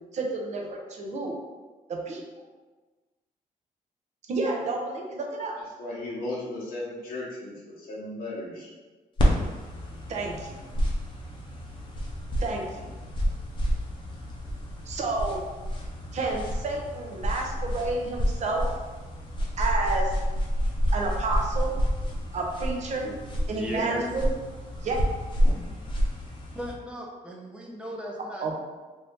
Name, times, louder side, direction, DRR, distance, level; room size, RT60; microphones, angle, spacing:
voice 1, 0.1-1.3 1.9-2.2 4.3-5.6 10.1-10.6 12.4-12.8 14.9-15.4 16.1-18.7 19.6-20.2 20.9-21.7 22.3-23.1 23.5-24.3 24.8-25.0 28.4-28.6, right 3 dB, 50° right, 0 dB, 0.6 m, -30 dB
voice 2, 5.8-8.7, left 2 dB, 80° left, -8 dB, 0.7 m, -35 dB
sound 1, 9.2-26.7, equal, 35° left, 0.6 m, -29 dB
voice 3, 23.5-24.1 26.5-28.6, equal, 5° right, -2 dB, 0.6 m, -36 dB
2.7 x 2.6 x 3.5 m, 1.3 s
cardioid pair, 135°, 15 cm